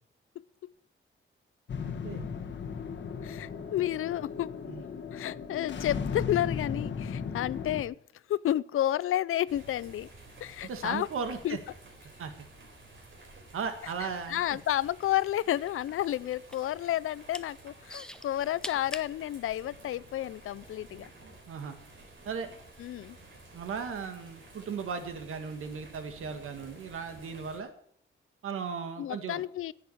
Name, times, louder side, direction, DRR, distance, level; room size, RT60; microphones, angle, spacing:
sound 1, 1.7-7.8, left 6 dB, 60° left, 1.4 m, -36 dB
voice 1, 1.8-2.3 4.7-4.8 10.6-11.6 12.2-12.3 13.5-14.6 21.5-21.8 22.3-22.5 23.5-27.7 28.4-29.4, right 6 dB, 85° right, 8 dB, 1.8 m, -36 dB
voice 2, 3.2-4.5 5.1-8.0 8.3-10.1 10.4-11.1 11.4-11.6 14.0-21.1 22.8-23.2 29.0-29.7, left 12 dB, 80° left, 21 dB, 0.5 m, -31 dB
sound 2, 9.5-27.6, right 2 dB, 65° right, 3.8 m, -53 dB
sound 3, 14.4-15.4 15.7-16.7 17.1-17.5 17.9-19.1 19.8-19.9, left 1 dB, 5° left, 0.6 m, -42 dB
10.5 x 8.5 x 8.3 m, 0.66 s
wide cardioid pair, 150°, 21 cm